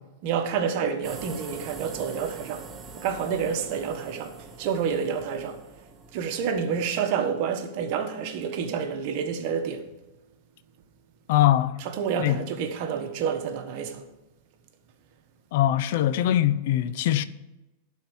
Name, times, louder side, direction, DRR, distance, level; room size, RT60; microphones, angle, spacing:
voice 1, 0.2-2.7 2.9-5.6 6.1-9.9 11.8-14.1, right 7 dB, 55° right, 1.4 m, -29 dB
sound 1, 1.0-7.1, right 5 dB, 25° right, 1.2 m, -44 dB
voice 2, 11.3-11.8 12.2-12.4 15.5-17.2, left 12 dB, 60° left, 0.6 m, -22 dB
11.5 x 4.6 x 7.2 m
hypercardioid pair, 120°, 0 cm